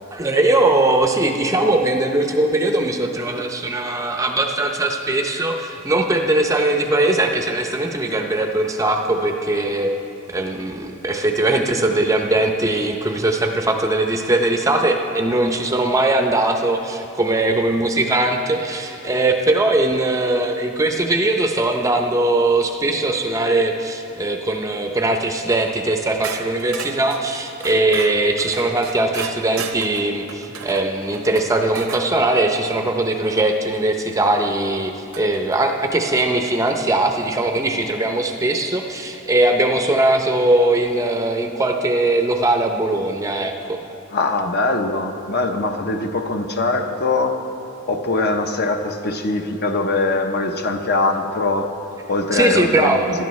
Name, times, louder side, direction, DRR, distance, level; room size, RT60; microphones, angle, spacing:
voice 1, 0.1-9.9 10.3-43.8 52.3-53.1, right 2 dB, 15° right, 4 dB, 0.5 m, -20 dB
sound 1, 26.2-32.1 34.1-34.2 35.1-35.6, right 6 dB, 65° right, 0.7 m, -34 dB
voice 2, 44.1-47.4 47.9-51.7 52.1-53.1, left 3 dB, 45° left, 5 dB, 0.7 m, -22 dB
17.5 x 12.0 x 3.1 m, 3.0 s
head